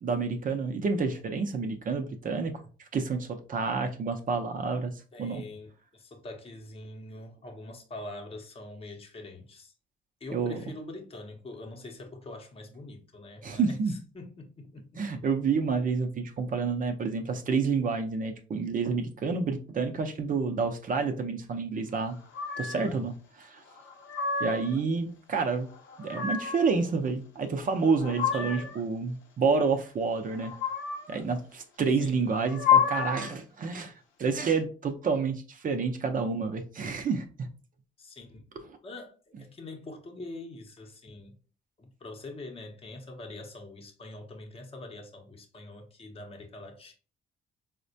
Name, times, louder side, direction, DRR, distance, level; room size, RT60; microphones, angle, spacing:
voice 1, 0.0-2.6 2.9-4.9 5.2-5.4 10.3-10.6 13.4-13.9 15.0-22.2 22.6-23.1 23.4-23.6 24.4-25.7 26.0-30.5 31.1-33.9 34.2-37.5, right 4 dB, 45° right, 0.6 m, -29 dB
voice 2, 5.1-9.7 10.2-15.2 22.6-23.1 28.3-28.8 32.0-32.4 38.0-38.4 38.8-41.4 41.8-47.0, left 2 dB, 30° left, 0.8 m, -44 dB
Recording kittles, 22.3-22.9 23.8-24.8 25.7-26.7 27.7-28.8 30.3-31.2 32.3-33.4, left 7 dB, 85° left, 0.6 m, -29 dB
4.1 x 2.1 x 2.6 m
cardioid pair, 90°, 20 cm